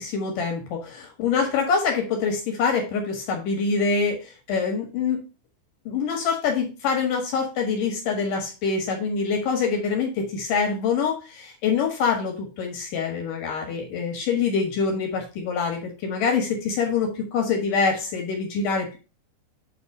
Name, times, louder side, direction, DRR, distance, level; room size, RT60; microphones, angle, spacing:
voice 1, 0.0-5.2 5.9-19.0, left 5 dB, 65° left, 2 dB, 2.1 m, -25 dB
8.7 x 3.1 x 5.3 m, 0.31 s
omnidirectional pair, 5.6 m